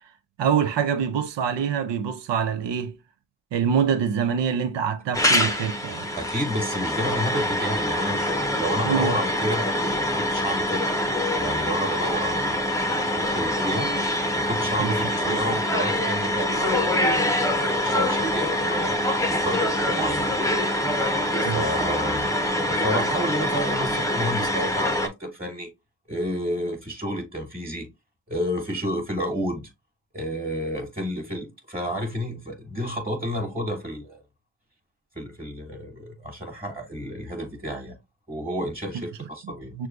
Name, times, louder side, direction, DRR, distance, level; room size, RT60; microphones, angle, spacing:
voice 1, 0.4-3.0 3.5-6.1 8.8-9.1 14.8-15.4 21.4-21.6 39.2-39.9, right 7 dB, 85° right, 0.7 m, -25 dB
sound 1, 5.1-25.1, left 1 dB, 10° left, 0.7 m, -25 dB
voice 2, 6.2-10.8 11.4-12.8 13.1-13.9 14.4-19.0 19.3-22.3 22.6-25.7 26.1-27.9 28.3-29.7 30.1-34.2 35.1-38.0 38.3-39.9, equal, 15° right, 1.6 m, -30 dB
6.3 x 2.3 x 2.5 m
cardioid pair, 55°, 42 cm